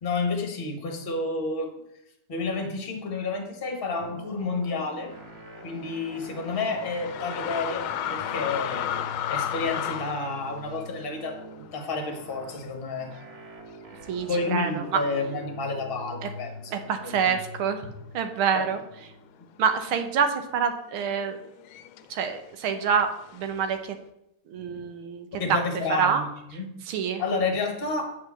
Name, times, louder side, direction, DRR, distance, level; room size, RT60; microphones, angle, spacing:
voice 1, 0.0-1.7 2.3-5.1 5.6-7.8 8.1-8.9 9.3-13.1 14.3-16.5 17.0-17.3 18.5-18.6 24.5-24.9 25.4-26.7 27.2-28.2, left 3 dB, 30° left, 4 dB, 1.4 m, -30 dB
sound 1, 4.0-20.5, equal, 40° right, 1.0 m, -44 dB
sound 2, 5.1-12.8 13.1-13.2 14.0-14.5 15.2-15.3 15.6-17.3 17.6-18.2 18.4-22.2 23.0-23.9, left 10 dB, 85° left, 1.4 m, -35 dB
voice 2, 14.1-15.0 16.2-16.3 16.7-18.8 19.6-21.4 22.1-24.0 24.5-25.6 25.9-26.2 26.9-27.2, right 6 dB, 80° right, 7 dB, 1.8 m, -27 dB
7.7 x 4.9 x 7.0 m, 0.82 s
omnidirectional pair, 2.3 m